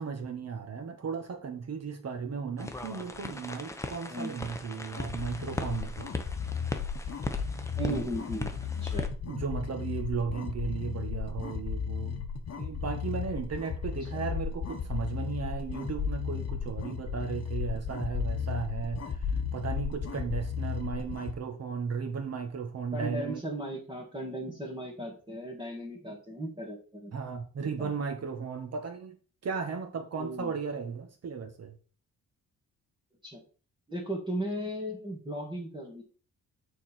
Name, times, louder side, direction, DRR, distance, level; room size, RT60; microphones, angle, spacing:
voice 1, 0.0-6.1 7.9-8.0 9.3-12.2 12.6-19.0 19.5-23.4 27.1-29.2 29.4-31.7, right 5 dB, 45° right, 5 dB, 1.6 m, -35 dB
sound 1, 2.6-9.1, left 1 dB, 10° left, 0.7 m, -39 dB
sound 2, 5.0-21.4, left 6 dB, 45° left, 1.1 m, -34 dB
voice 2, 7.8-8.5 8.8-9.1 14.0-14.1 22.9-27.1 27.6-27.9 30.2-30.5 33.2-33.4 33.9-36.0, right 1 dB, 15° right, -2 dB, 1.8 m, -36 dB
8.9 x 4.3 x 4.4 m, 0.39 s
wide cardioid pair, 150°, 35 cm